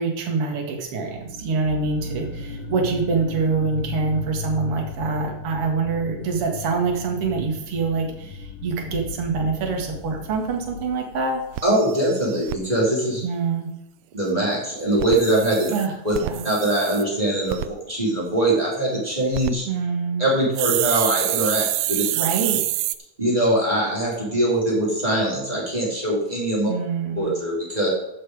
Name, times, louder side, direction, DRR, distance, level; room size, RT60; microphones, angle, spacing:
voice 1, 0.0-11.4 13.2-13.7 15.7-15.9 16.2-16.5 19.7-20.3 22.1-22.6 26.7-27.3, right 4 dB, 45° right, 1 dB, 2.6 m, -25 dB
sound 1, 1.0-11.6, left 4 dB, 65° left, 1.6 m, -36 dB
sound 2, 10.4-10.5 10.9-11.0 11.2-11.3 11.5-12.6 14.9-17.0 17.5-17.7 19.1-19.5 20.6-23.0, right 16 dB, 80° right, 1.8 m, -26 dB
voice 2, 11.6-13.2 14.1-15.7 16.0-16.1 16.4-19.6 20.2-22.0 23.2-26.7 27.2-27.9, right 1 dB, 10° right, -4 dB, 4.0 m, -22 dB
15.5 x 6.0 x 4.9 m, 0.86 s
omnidirectional pair, 3.8 m